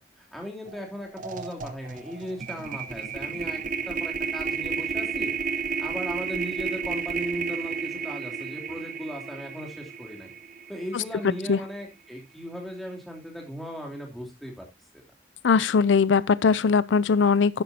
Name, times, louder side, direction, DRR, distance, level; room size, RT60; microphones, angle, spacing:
voice 1, 0.0-5.3 5.8-10.3 10.7-14.7 14.9-15.0, equal, ahead, 2.8 m, -38 dB
sound 1, 0.7-0.8 1.1-11.4, right 6 dB, 45° right, 0.8 m, -32 dB
voice 2, 15.4-17.6, left 5 dB, 85° left, 0.5 m, -20 dB
12.0 x 9.4 x 2.7 m
head